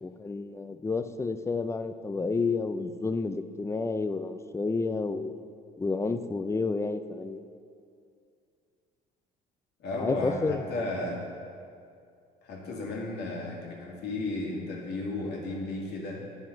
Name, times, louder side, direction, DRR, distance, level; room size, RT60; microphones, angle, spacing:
voice 1, 0.0-5.3 5.8-7.4 10.0-10.6, left 4 dB, 15° left, 10 dB, 0.4 m, -30 dB
voice 2, 9.8-11.3 12.4-16.3, left 2 dB, 65° left, -2 dB, 2.1 m, -34 dB
10.0 x 5.0 x 5.1 m, 2.3 s
supercardioid pair, 85°, 18 cm